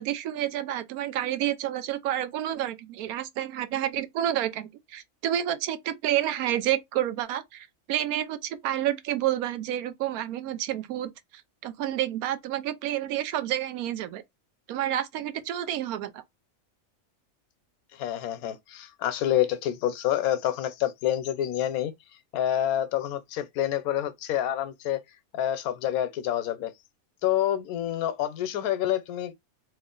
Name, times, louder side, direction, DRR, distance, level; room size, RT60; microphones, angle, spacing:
voice 1, 0.0-11.1 11.6-14.2 14.7-16.2, right 12 dB, 90° right, 1.1 m, -29 dB
voice 2, 17.9-21.9 22.3-25.0 25.3-26.7 27.2-29.3, left 11 dB, 85° left, 1.1 m, -27 dB
3.1 x 2.4 x 3.7 m
omnidirectional pair, 1.5 m